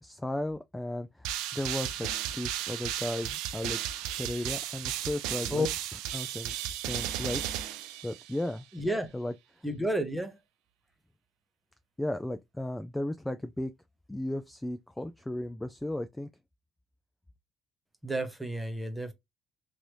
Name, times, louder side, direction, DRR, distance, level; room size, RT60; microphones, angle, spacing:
voice 1, 0.0-2.1 2.3-5.7 6.1-7.4 8.0-8.7 9.1-9.3 12.0-13.7 14.1-16.3, left 1 dB, 10° left, 0.3 m, -35 dB
sound 1, 1.2-8.5, right 11 dB, 90° right, 0.4 m, -35 dB
voice 2, 8.7-9.1 9.6-10.4 18.0-19.1, equal, 5° right, 0.9 m, -31 dB
3.2 x 2.6 x 2.9 m
cardioid pair, 95°, 0 cm